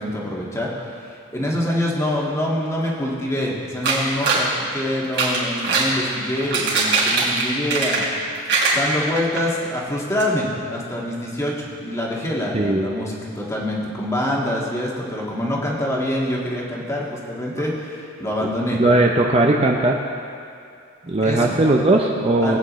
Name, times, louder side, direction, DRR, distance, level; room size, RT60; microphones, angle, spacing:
voice 1, 0.0-8.3 8.7-18.8 21.1-21.6 22.4-22.6, left 1 dB, 15° left, -4 dB, 1.7 m, -25 dB
sound 1, 3.8-4.5 5.0-5.9 6.4-8.2 8.5-9.4 9.8-9.9 10.2-10.3, right 3 dB, 55° right, 3.2 m, -21 dB
voice 2, 12.5-12.9 18.4-20.0 21.0-22.6, right 2 dB, 30° right, 0 dB, 0.6 m, -18 dB
20.0 x 9.1 x 3.1 m, 2.4 s
head